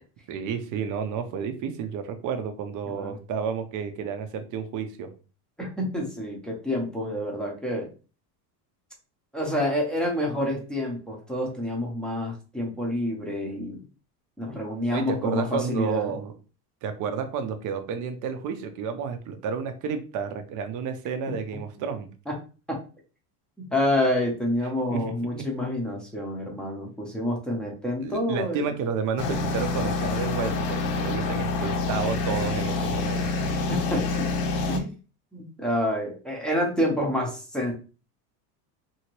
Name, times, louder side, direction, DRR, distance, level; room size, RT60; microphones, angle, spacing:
voice 1, 0.3-5.1 14.9-16.3 16.8-22.1 24.9-25.0 25.3-25.4 28.0-33.4, right 6 dB, 40° right, 8 dB, 0.6 m, -31 dB
voice 2, 5.6-7.9 9.3-13.8 14.4-16.1 22.3-22.4 22.7-22.8 23.7-28.8 33.7-34.1 34.7-35.0 35.3-37.7, left 1 dB, ahead, -2 dB, 0.7 m, -28 dB
sound 1, 29.2-34.8, left 3 dB, 55° left, 0.8 m, -27 dB
2.8 x 2.7 x 3.0 m, 0.35 s
supercardioid pair, 135°, 48 cm